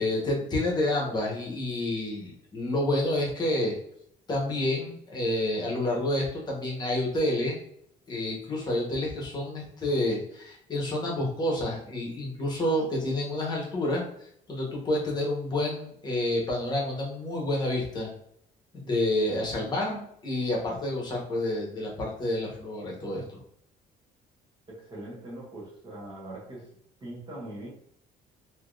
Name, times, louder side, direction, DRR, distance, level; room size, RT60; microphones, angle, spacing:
voice 1, 0.0-3.7 4.3-7.6 8.1-18.1 18.7-23.2, left 1 dB, 25° left, -2 dB, 1.0 m, -29 dB
voice 2, 24.7-26.7 27.0-27.7, right 1 dB, 30° right, -3 dB, 1.1 m, -41 dB
3.4 x 2.8 x 2.4 m, 0.69 s
cardioid pair, 155°, 17 cm